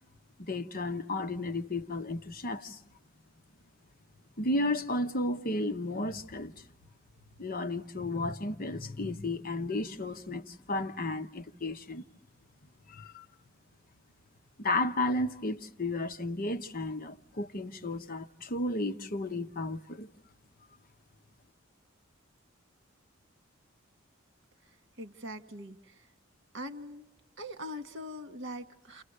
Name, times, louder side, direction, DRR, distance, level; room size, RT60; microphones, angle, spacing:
voice 1, 0.4-2.8 4.4-6.5 7.4-12.0 12.9-13.3 14.6-20.1, left 2 dB, 45° left, 0.9 m, -33 dB
voice 2, 24.7-26.1 26.5-27.1 27.4-29.0, equal, 60° right, 1.7 m, -42 dB
30.0 x 29.5 x 6.5 m
head